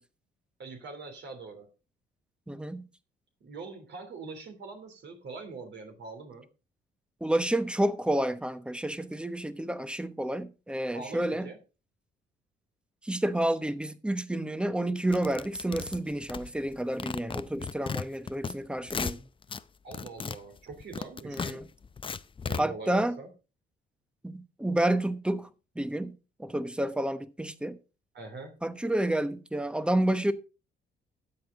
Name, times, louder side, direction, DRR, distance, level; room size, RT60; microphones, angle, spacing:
voice 1, 0.6-1.7 3.4-6.5 10.9-11.6 19.8-21.6 22.4-23.3 28.1-28.6, right 3 dB, 60° right, 3.1 m, -43 dB
voice 2, 2.5-2.9 7.2-11.5 13.0-19.2 21.2-21.7 22.6-23.2 24.2-25.5 25.8-27.8 28.6-30.3, right 1 dB, 5° right, 1.0 m, -30 dB
sound 1, 15.1-16.7 17.0-18.5 18.8-19.6 19.9-22.6, left 5 dB, 25° left, 0.5 m, -35 dB
13.0 x 7.9 x 3.8 m
cardioid pair, 90°, 20 cm